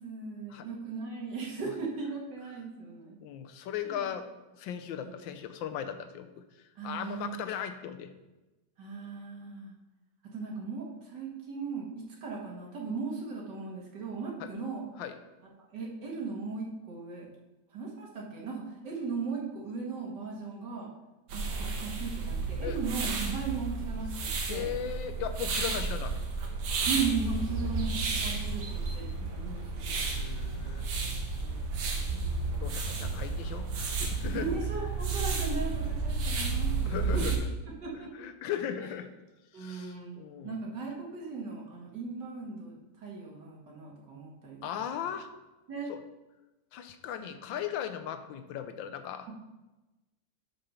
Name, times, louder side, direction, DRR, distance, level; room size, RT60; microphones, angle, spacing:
voice 1, 0.0-3.2 3.8-4.1 5.0-5.2 6.8-7.4 8.8-9.7 10.3-14.8 15.7-17.3 17.7-20.9 21.3-24.7 26.9-30.0 31.0-31.6 32.1-33.1 34.3-37.2 37.7-38.1 39.5-44.6 45.7-45.9 47.2-47.3, right 4 dB, 65° right, -3 dB, 2.3 m, -37 dB
voice 2, 3.2-4.3 4.5-6.4 6.8-8.1 14.4-14.5 15.0-15.1 22.6-22.8 24.5-26.1 30.1-30.9 32.6-33.7 34.0-34.5 36.8-37.4 38.1-39.1 39.5-40.6 44.6-45.3 45.9-46.0 46.7-49.3, left 9 dB, 80° left, 8 dB, 1.4 m, -37 dB
sound 1, 21.3-37.4, right 4 dB, 80° right, 1.9 m, -32 dB
6.6 x 6.0 x 5.6 m, 1.1 s
omnidirectional pair, 2.1 m